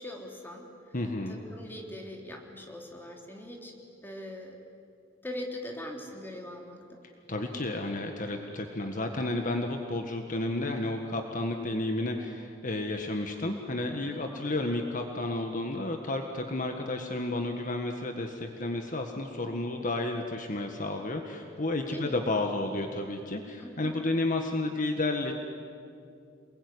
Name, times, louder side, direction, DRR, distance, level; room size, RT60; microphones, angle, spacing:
voice 1, 0.0-1.0 1.3-3.7 4.0-4.6 5.2-7.0 14.3-14.6 21.9-22.1 23.6-24.0, left 1 dB, 10° left, 1 dB, 3.5 m, -41 dB
voice 2, 0.9-1.4 7.3-25.4, left 2 dB, 45° left, 4 dB, 1.7 m, -31 dB
28.0 x 21.5 x 9.8 m, 2.5 s
head